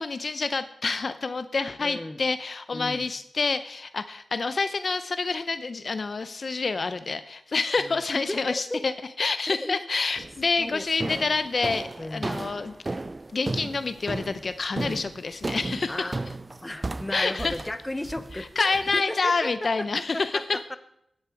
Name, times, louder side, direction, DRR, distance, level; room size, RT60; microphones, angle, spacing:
voice 1, 0.0-12.7 13.3-16.2 17.1-17.6 18.4-20.8, left 4 dB, 50° left, 11 dB, 0.6 m, -28 dB
voice 2, 1.8-2.2 2.7-3.1 7.8-8.4 8.7-8.8 9.5-9.8 10.6-11.3 12.0-12.4 14.8-15.0 15.9-16.2 16.6-19.9 20.1-20.8, left 1 dB, 15° left, 11 dB, 0.9 m, -35 dB
sound 1, 10.2-10.5 11.0-19.0, right 2 dB, 25° right, 0.4 m, -34 dB
16.5 x 10.5 x 4.6 m, 0.76 s
wide cardioid pair, 105°, 0 cm